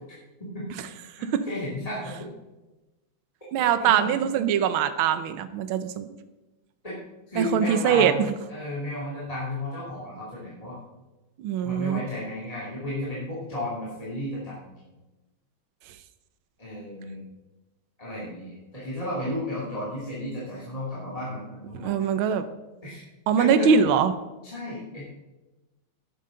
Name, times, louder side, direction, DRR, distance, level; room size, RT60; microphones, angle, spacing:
voice 1, 1.2-2.3 3.6-4.1 6.8-6.9 7.3-8.2 8.5-10.8 11.6-14.8 16.6-17.2 18.0-22.1 22.8-23.0 23.4-23.8 24.4-25.1, left 1 dB, 15° left, -8 dB, 2.6 m, -33 dB
voice 2, 3.5-6.1 7.4-8.1 11.4-12.0 21.8-22.4 23.3-24.1, right 7 dB, 75° right, 11 dB, 1.6 m, -22 dB
12.5 x 10.5 x 3.8 m, 1.1 s
omnidirectional pair, 2.3 m